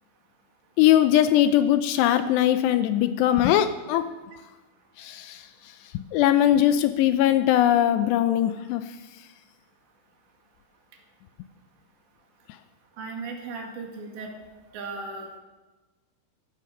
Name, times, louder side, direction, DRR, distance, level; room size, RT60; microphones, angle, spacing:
voice 1, 0.8-4.1 5.0-5.5 5.9-8.8, left 12 dB, 80° left, 10 dB, 2.6 m, -21 dB
voice 2, 13.0-14.3 14.7-15.3, right 4 dB, 75° right, 1 dB, 4.3 m, -36 dB
15.0 x 11.5 x 6.5 m, 1.2 s
omnidirectional pair, 5.2 m